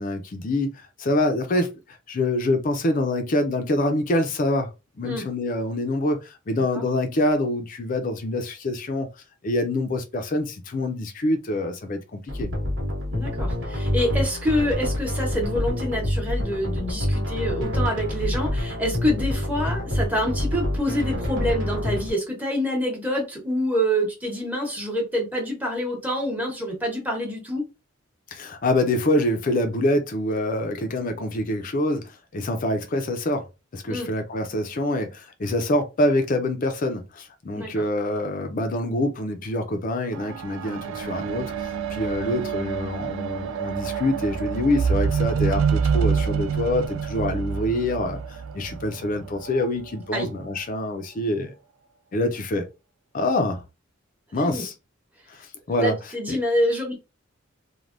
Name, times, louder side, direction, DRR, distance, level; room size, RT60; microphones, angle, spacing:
voice 1, 0.0-4.7 5.0-9.1 9.4-12.5 28.3-33.5 33.7-51.5 52.1-52.7 53.1-53.6 54.3-54.7 55.3-55.9 56.3-56.4, left 1 dB, 40° left, 0.4 m, -25 dB
sound 1, 12.3-22.1, left 1 dB, 60° right, 1.1 m, -27 dB
voice 2, 13.1-27.6 33.9-34.1 37.5-37.8 50.1-50.3 54.4-54.7 55.8-56.9, equal, 10° right, 0.9 m, -26 dB
sound 2, 40.1-49.6 50.4-50.6, right 6 dB, 90° right, 0.3 m, -27 dB
3.2 x 2.1 x 2.5 m
head